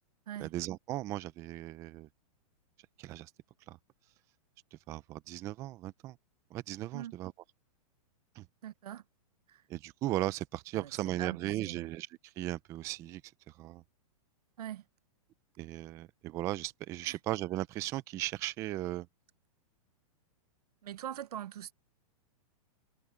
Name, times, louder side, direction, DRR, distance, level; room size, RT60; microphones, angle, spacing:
voice 1, 0.4-2.1 3.0-3.3 3.7-3.8 4.7-6.2 6.5-7.3 8.4-8.5 9.7-13.2 13.5-13.8 15.6-19.1, right 15 dB, 15° right, 0.4 m, -37 dB
voice 2, 8.6-9.0 9.5-9.6 10.7-10.9 11.2-11.8 14.6-14.8 17.0-17.2 20.8-21.7, right 11 dB, 90° right, 0.8 m, -42 dB
hypercardioid pair, 160°, 19 cm